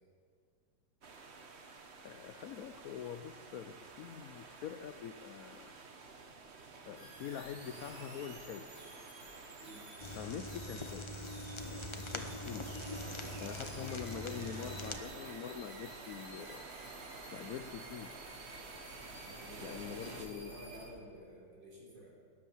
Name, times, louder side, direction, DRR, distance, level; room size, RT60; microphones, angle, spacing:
sound 1, 1.0-20.3, right 4 dB, 40° right, 1.1 m, -51 dB
voice 1, 2.0-5.7 6.8-8.7 10.2-11.1 12.0-12.7 13.4-16.6 17.3-18.1 19.6-20.5, left 9 dB, 75° left, 9 dB, 0.8 m, -45 dB
sound 2, 7.0-20.9, equal, 80° right, 5.9 m, -53 dB
sound 3, 10.0-15.0, left 1 dB, 50° left, 0.3 m, -43 dB
voice 2, 13.1-13.4 19.2-22.1, equal, 65° right, -3 dB, 4.4 m, -52 dB
18.5 x 10.0 x 7.1 m, 2.1 s
omnidirectional pair, 2.1 m